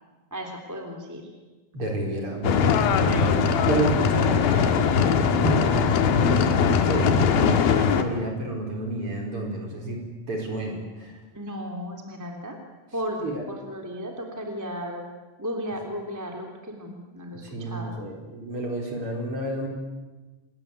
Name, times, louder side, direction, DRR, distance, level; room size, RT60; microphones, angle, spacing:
voice 1, 0.3-1.3 11.3-12.6 12.9-13.2 13.5-15.1 15.4-18.0, equal, 5° right, 2 dB, 2.8 m, -35 dB
voice 2, 1.7-11.2 13.2-13.4 17.4-19.7, right 2 dB, 35° right, 2 dB, 5.4 m, -30 dB
sound 1, 2.4-8.0, left 6 dB, 85° left, 3.5 m, -21 dB
28.0 x 21.0 x 9.6 m, 1.2 s
omnidirectional pair, 4.2 m